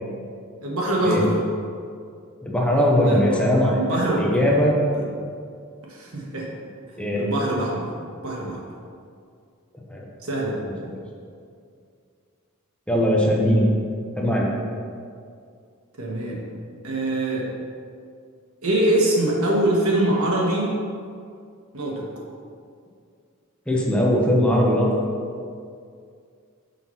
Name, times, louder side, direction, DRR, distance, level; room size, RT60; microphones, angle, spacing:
voice 1, 0.6-1.3 3.0-3.4 3.7-4.4 4.9-5.1 5.9-6.5 7.1-7.9 8.2-8.6 10.2-10.6 16.0-16.4 16.8-17.5 18.6-20.7 21.7-22.1, right 1 dB, 85° right, -2 dB, 1.4 m, -23 dB
voice 2, 2.4-4.8 7.0-7.2 9.9-10.0 12.9-13.6 14.2-14.5 23.7-24.9, equal, 5° left, -3 dB, 0.9 m, -20 dB
5.6 x 4.5 x 5.7 m, 2.3 s
head